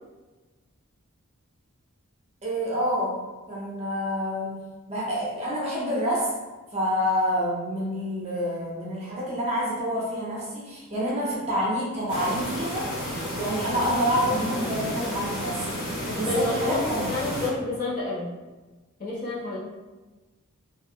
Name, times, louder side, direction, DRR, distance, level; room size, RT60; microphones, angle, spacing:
voice 1, 2.4-3.2 3.5-4.5 4.9-6.3 6.7-12.9 13.3-15.6 15.9-17.1, equal, 30° right, -5 dB, 0.6 m, -27 dB
sound 1, 12.1-17.5, equal, 85° left, 1.1 m, -32 dB
voice 2, 16.1-18.3 19.0-19.6, left 2 dB, 40° left, -8 dB, 0.7 m, -29 dB
2.2 x 2.2 x 2.8 m, 1.2 s
head